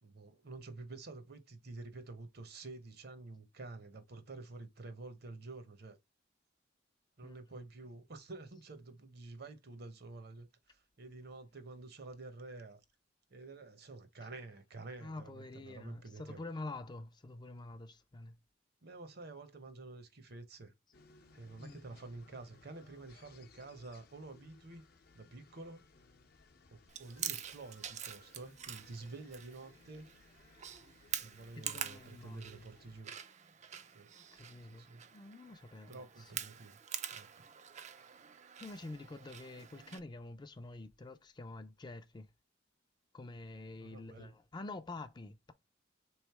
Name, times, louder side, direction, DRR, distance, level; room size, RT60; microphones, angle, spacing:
voice 1, 0.0-6.0 7.2-12.8 13.3-16.4 18.8-20.7 21.3-24.8 25.1-25.8 26.7-30.1 31.2-33.1 33.9-34.1 34.7-35.0 35.9-36.8 37.1-37.3 43.8-44.3, right 3 dB, 60° right, 0.8 m, -49 dB
voice 2, 14.8-18.4 21.6-22.0 31.5-32.7 34.1-34.9 35.1-36.3 38.6-42.3 43.1-45.5, left 2 dB, 25° left, 0.4 m, -47 dB
sound 1, 20.9-33.0, left 3 dB, 55° left, 0.7 m, -63 dB
Chewing mastication, 26.9-40.0, right 9 dB, 40° right, 0.4 m, -46 dB
3.6 x 3.1 x 4.6 m
head